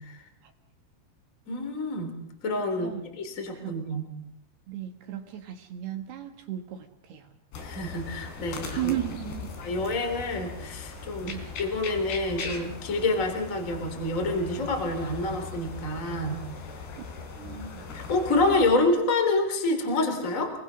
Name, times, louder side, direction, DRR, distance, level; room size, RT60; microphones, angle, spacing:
voice 1, 1.5-2.1 2.4-2.9 3.2-4.0 7.6-8.9 9.6-16.4 17.4-20.5, left 2 dB, 20° left, 5 dB, 3.1 m, -27 dB
voice 2, 3.5-3.9 4.7-7.3 8.8-9.5 11.2-11.5 17.0-17.1 17.4-17.6, right 13 dB, 65° right, 5 dB, 3.2 m, -35 dB
sound 1, 7.5-18.8, left 5 dB, 60° left, 5.2 m, -39 dB
30.0 x 19.5 x 6.3 m, 0.78 s
omnidirectional pair, 5.5 m